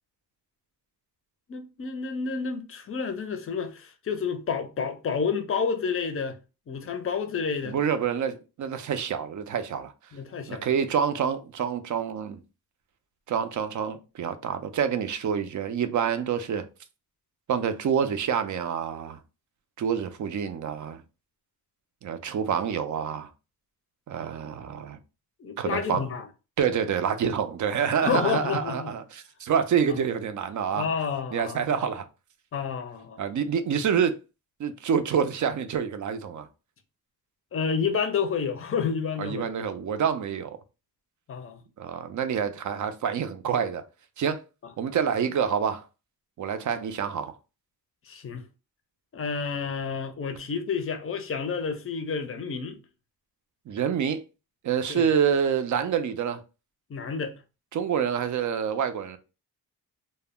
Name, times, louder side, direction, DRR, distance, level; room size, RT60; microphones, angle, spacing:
voice 1, 1.5-6.4 6.7-7.8 10.1-10.7 25.4-26.3 28.0-28.9 29.9-30.0 30.7-31.7 32.5-33.2 37.5-39.5 41.3-41.6 48.1-48.4 49.1-52.8 54.9-55.0 56.9-57.3, left 5 dB, 35° left, 0.5 m, -30 dB
voice 2, 7.6-9.9 10.5-12.4 13.3-16.6 17.5-19.2 19.8-21.0 22.0-23.3 24.1-25.0 25.6-26.0 26.6-29.0 29.4-30.9 31.3-32.0 33.2-34.2 34.6-36.5 39.2-40.6 41.8-43.8 44.2-44.4 44.8-45.8 46.4-47.3 53.7-54.2 54.6-56.4 57.7-59.2, right 7 dB, 50° right, 0.4 m, -27 dB
2.1 x 2.1 x 3.5 m
wide cardioid pair, 110°, 38 cm